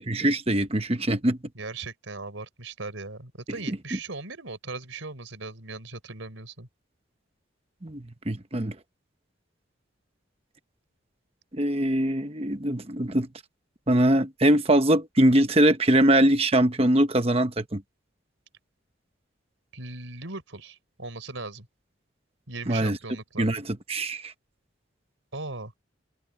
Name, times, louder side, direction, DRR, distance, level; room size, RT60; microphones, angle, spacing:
voice 1, 0.0-1.4 3.9-4.0 7.8-8.7 11.5-13.3 13.9-17.8 22.7-23.0 23.4-24.3, right 1 dB, 30° right, 1.1 m, -22 dB
voice 2, 1.5-6.7 19.7-21.7 22.5-23.5 25.3-25.7, right 3 dB, 85° right, 4.2 m, -38 dB
head